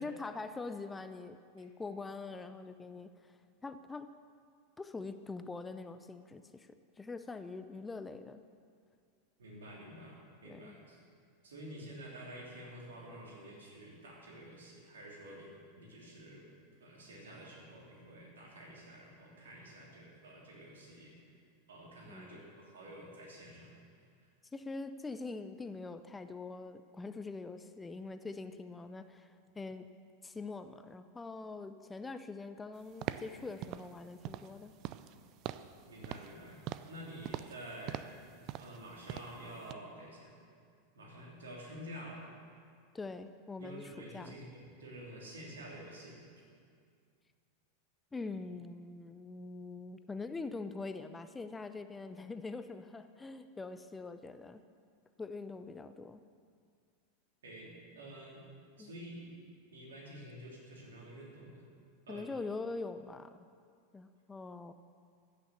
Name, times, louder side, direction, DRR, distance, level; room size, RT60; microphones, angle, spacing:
voice 1, 0.0-4.2 4.8-8.4 10.4-10.8 22.1-22.4 24.5-29.9 30.2-34.7 42.9-44.3 48.1-54.6 55.2-56.2 58.8-58.9 62.1-63.4 63.9-64.7, left 3 dB, 15° left, 10 dB, 0.5 m, -44 dB
voice 2, 9.4-11.0 11.4-16.4 16.8-21.1 21.7-23.8 35.9-38.0 38.3-40.3 40.9-42.3 43.6-46.3 57.4-58.4 58.8-59.3 59.7-61.6 62.1-62.3, right 1 dB, 70° right, -2 dB, 3.0 m, -49 dB
sound 1, 33.0-33.3 33.6-33.9 34.2-34.5 34.8-35.1 35.4-35.7 36.0-36.4 36.7-37.0 37.2-37.6 37.9-38.2 38.5-38.8 39.1-39.4 39.7-39.8, right 13 dB, 45° right, 0.4 m, -42 dB
15.0 x 6.7 x 7.0 m, 2.2 s
figure-of-eight pair, 90°, 0 cm